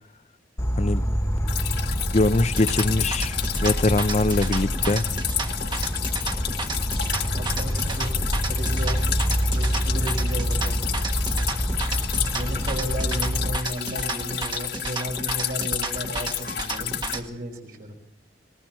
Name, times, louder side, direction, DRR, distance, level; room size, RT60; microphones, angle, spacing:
Insect, 0.6-13.6, equal, 15° left, 1.5 m, -27 dB
Drip, 1.5-17.2, left 11 dB, 65° left, 1.5 m, -31 dB
voice 1, 2.1-5.0, left 2 dB, 40° left, 0.7 m, -23 dB
sound 1, 2.5-17.3, right 3 dB, 25° right, 1.5 m, -33 dB
voice 2, 7.3-8.1 8.5-9.0 9.5-11.0 12.3-17.9, equal, 55° right, 4.9 m, -34 dB
28.0 x 20.5 x 4.5 m
head